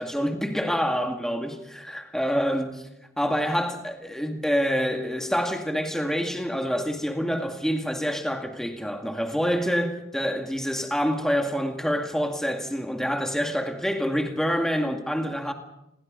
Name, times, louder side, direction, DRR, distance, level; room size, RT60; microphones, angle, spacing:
voice 1, 0.0-2.8 3.2-15.5, equal, 5° left, 2.1 m, -27 dB
28.5 x 22.5 x 5.3 m
head